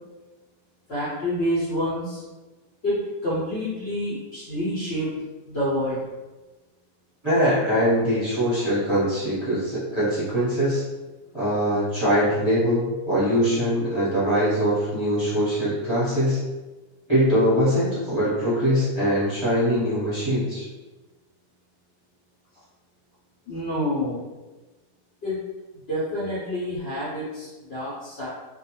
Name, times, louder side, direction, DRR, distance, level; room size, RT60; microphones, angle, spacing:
voice 1, 0.9-2.2 2.8-5.1 5.5-6.0 23.5-24.2 25.2-25.4 25.9-28.3, equal, 55° left, -10 dB, 0.8 m, -28 dB
voice 2, 7.2-10.8 11.3-16.4 17.1-20.6, equal, 20° right, -11 dB, 0.9 m, -22 dB
2.4 x 2.2 x 2.9 m, 1.2 s
omnidirectional pair, 1.6 m